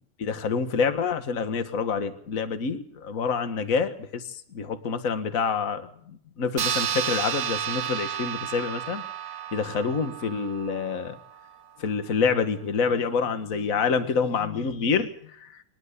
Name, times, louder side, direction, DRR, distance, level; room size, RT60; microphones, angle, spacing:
voice 1, 0.2-9.0 9.5-11.2 11.8-15.6, left 5 dB, 40° left, 9 dB, 1.9 m, -27 dB
sound 1, 6.6-11.4, right 9 dB, 55° right, 1.4 m, -31 dB
25.5 x 12.5 x 8.4 m, 0.63 s
omnidirectional pair, 2.3 m